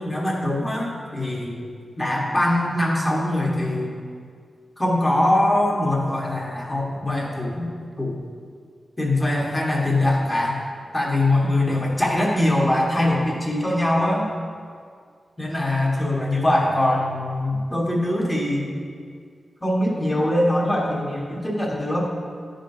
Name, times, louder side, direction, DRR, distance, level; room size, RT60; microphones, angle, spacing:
voice 1, 0.0-1.6 2.0-4.0 4.8-7.7 8.0-8.2 9.0-10.6 10.9-14.3 15.4-18.8 19.6-22.1, left 1 dB, 15° left, -4 dB, 1.4 m, -22 dB
11.0 x 5.2 x 2.7 m, 2.1 s
wide cardioid pair, 115°, 0 cm